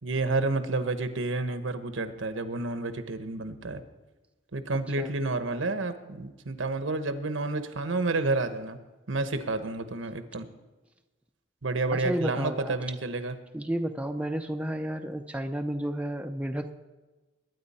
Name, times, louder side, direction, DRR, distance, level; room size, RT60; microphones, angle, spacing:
voice 1, 0.0-3.8 4.5-8.8 9.1-10.5 11.6-13.4, right 3 dB, 75° right, 9 dB, 1.1 m, -30 dB
voice 2, 11.9-12.8 13.5-16.7, right 1 dB, 5° right, 5 dB, 0.5 m, -31 dB
21.5 x 9.7 x 4.3 m, 1.2 s
head